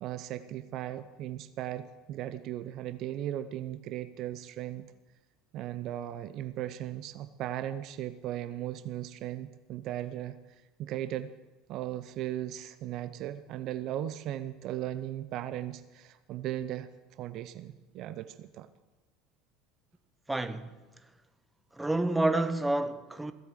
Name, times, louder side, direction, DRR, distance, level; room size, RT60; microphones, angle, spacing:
voice 1, 0.0-4.9 5.5-10.4 10.8-11.3 11.7-18.7, right 12 dB, 55° right, 0.7 m, -37 dB
voice 2, 20.3-20.7 21.7-23.3, right 2 dB, 10° right, 1.2 m, -28 dB
16.5 x 8.1 x 8.3 m
hypercardioid pair, 75°, 0 cm